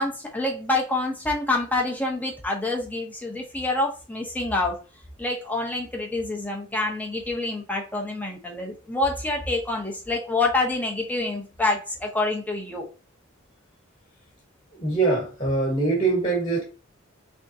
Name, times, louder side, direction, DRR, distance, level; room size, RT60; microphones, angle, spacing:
voice 1, 0.0-4.8 5.2-12.9, left 2 dB, 10° left, 0.8 m, -27 dB
voice 2, 14.7-16.6, right 3 dB, 25° left, 1.3 m, -23 dB
3.6 x 3.5 x 2.7 m
head